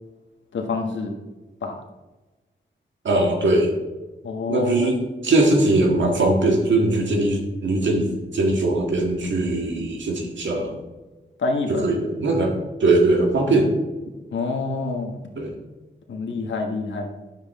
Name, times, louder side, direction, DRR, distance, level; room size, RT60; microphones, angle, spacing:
voice 1, 0.5-1.1 1.6-1.8 4.2-4.9 11.4-11.9 14.3-15.2 16.1-17.1, left 3 dB, 85° left, 3 dB, 1.4 m, -27 dB
voice 2, 3.0-3.7 4.5-10.8 11.7-13.7 15.4-15.6, right 2 dB, 80° right, 2 dB, 1.7 m, -21 dB
9.7 x 7.4 x 3.6 m, 1.2 s
cardioid pair, 50°, 19 cm